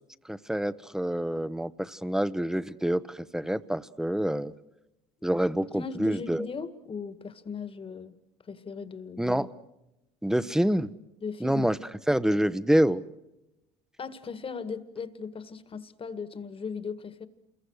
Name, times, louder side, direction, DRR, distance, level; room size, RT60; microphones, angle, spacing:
voice 1, 0.3-4.5 5.2-6.5 9.2-9.5 10.2-10.9 11.4-11.8 12.1-13.0, right 1 dB, 5° right, 0.9 m, -27 dB
voice 2, 5.7-8.2 8.5-9.4 11.2-11.7 14.0-17.3, left 5 dB, 30° left, 1.8 m, -38 dB
28.5 x 22.0 x 6.5 m
supercardioid pair, 80°, 18 cm